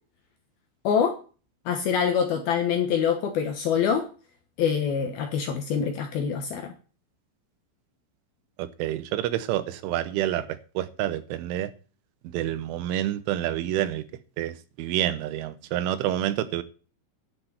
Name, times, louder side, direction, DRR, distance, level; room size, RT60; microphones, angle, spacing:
voice 1, 0.8-1.2 1.7-4.1 4.6-6.7, left 7 dB, 70° left, 2.5 m, -25 dB
voice 2, 8.6-10.5 10.8-11.7 12.3-14.0 14.4-16.6, right 12 dB, 85° right, 3.3 m, -28 dB
11.5 x 6.3 x 8.0 m
omnidirectional pair, 5.8 m